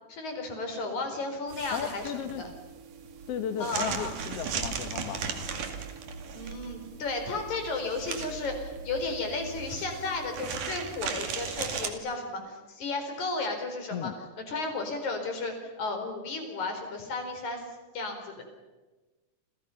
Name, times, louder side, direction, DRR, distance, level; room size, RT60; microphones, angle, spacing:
voice 1, 0.1-2.1 2.4-2.5 3.6-4.1 6.3-17.6 17.9-18.4, left 3 dB, 45° left, 5 dB, 5.4 m, -34 dB
sound 1, 1.5-11.9, right 6 dB, 55° right, 3.4 m, -37 dB
voice 2, 1.7-2.4 3.3-5.7 13.9-14.1, left 9 dB, 75° left, 9 dB, 1.4 m, -35 dB
29.5 x 28.0 x 5.8 m, 1.2 s
omnidirectional pair, 4.8 m